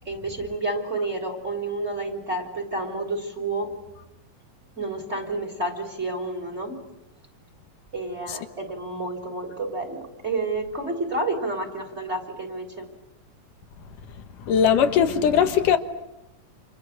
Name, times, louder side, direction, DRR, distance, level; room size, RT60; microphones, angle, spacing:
voice 1, 0.0-3.7 4.8-6.8 7.9-12.9, right 2 dB, 20° right, 3.6 m, -30 dB
voice 2, 14.5-15.8, left 8 dB, 75° left, 2.9 m, -19 dB
30.0 x 28.0 x 6.5 m
omnidirectional pair, 3.7 m